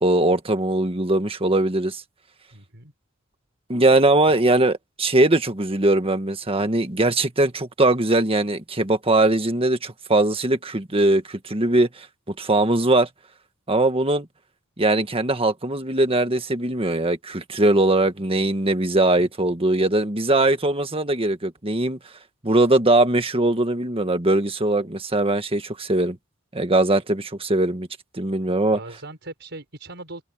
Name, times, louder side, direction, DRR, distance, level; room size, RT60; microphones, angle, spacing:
voice 1, 0.0-2.0 3.7-13.1 13.7-14.3 14.8-22.0 22.4-26.2 26.5-27.9 28.1-28.8, right 2 dB, 30° right, 1.7 m, -21 dB
voice 2, 2.5-2.9 4.3-4.4 19.2-19.3 28.7-30.2, right 2 dB, 60° right, 5.9 m, -39 dB
head